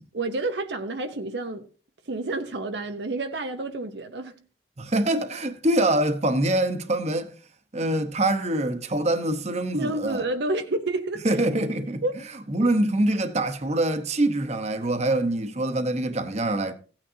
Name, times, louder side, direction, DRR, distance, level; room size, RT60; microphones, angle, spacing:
voice 1, 0.1-1.7 2.1-4.4 9.7-11.2 12.0-12.2, right 2 dB, 75° right, 0.8 m, -29 dB
voice 2, 4.8-7.3 7.7-10.2 11.2-12.0 12.5-16.7, right 1 dB, 40° right, 1.0 m, -24 dB
16.0 x 8.9 x 2.8 m
head